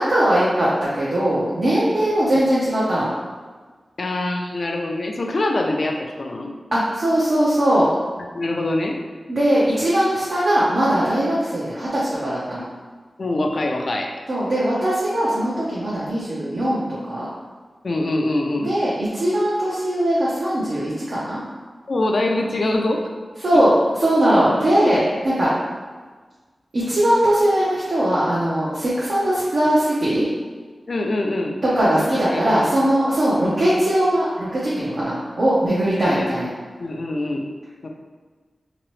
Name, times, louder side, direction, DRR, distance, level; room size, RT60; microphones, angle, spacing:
voice 1, 0.0-3.1 6.7-7.9 9.3-12.6 14.3-17.3 18.6-21.4 23.4-23.7 24.0-25.5 26.7-30.3 31.6-36.5, right 1 dB, 65° right, -9 dB, 0.7 m, -20 dB
voice 2, 4.0-6.5 8.3-9.0 13.2-14.2 17.8-18.7 21.9-23.1 23.5-23.6 30.9-31.6 32.3-32.7 33.4-33.6 36.0-36.3 36.8-37.4 37.8-37.9, left 2 dB, 60° left, 2 dB, 0.4 m, -24 dB
2.9 x 2.9 x 3.1 m, 1.4 s
wide cardioid pair, 95°, 0 cm